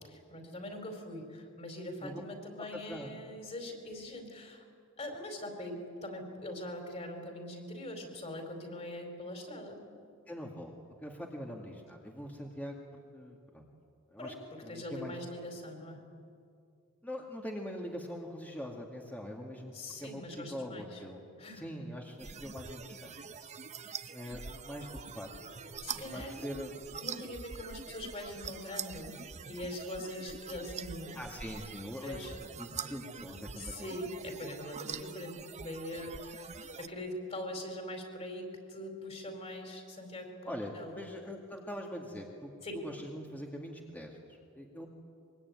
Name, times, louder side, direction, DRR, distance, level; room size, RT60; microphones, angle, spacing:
voice 1, 0.3-4.6 5.0-9.8 14.2-16.0 19.7-21.0 21.4-21.7 25.8-26.4 27.0-29.2 29.5-31.2 32.0-32.4 33.6-41.0 42.6-42.8, left 1 dB, 30° left, 3 dB, 4.6 m, -42 dB
voice 2, 2.6-3.2 10.3-12.8 13.1-13.7 14.1-14.3 14.6-15.1 17.0-19.7 20.0-21.2 21.5-23.2 24.1-24.9 25.1-25.6 25.9-26.7 31.1-34.0 36.0-36.1 40.5-42.5 42.8-44.9, equal, 10° left, 0 dB, 2.1 m, -43 dB
sound 1, 22.2-36.9, right 6 dB, 30° right, 0.8 m, -44 dB
24.5 x 23.5 x 9.6 m, 2.4 s
head